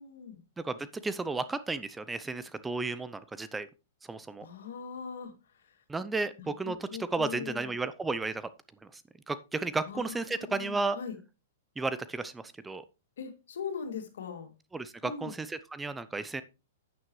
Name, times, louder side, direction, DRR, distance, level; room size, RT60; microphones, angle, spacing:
voice 1, 0.0-0.4 4.4-5.8 6.4-7.7 9.9-11.2 13.2-14.5 15.0-15.4, left 6 dB, 75° left, 5 dB, 2.6 m, -41 dB
voice 2, 0.6-3.7 4.1-4.5 5.9-8.5 8.9-9.0 9.3-11.0 11.8-12.9 14.7-16.4, right 3 dB, 10° right, 14 dB, 0.6 m, -33 dB
9.2 x 8.8 x 3.2 m, 0.29 s
hypercardioid pair, 125°, 0 cm